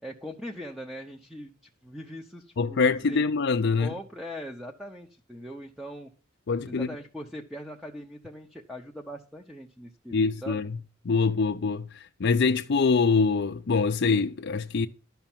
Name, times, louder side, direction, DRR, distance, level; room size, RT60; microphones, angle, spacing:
voice 1, 0.0-1.5 1.8-3.2 3.8-6.1 6.7-10.6, equal, ahead, 0.8 m, -41 dB
voice 2, 2.6-3.9 6.5-6.9 10.1-10.8 11.0-14.9, left 4 dB, 55° left, 0.5 m, -24 dB
12.0 x 5.8 x 7.3 m
head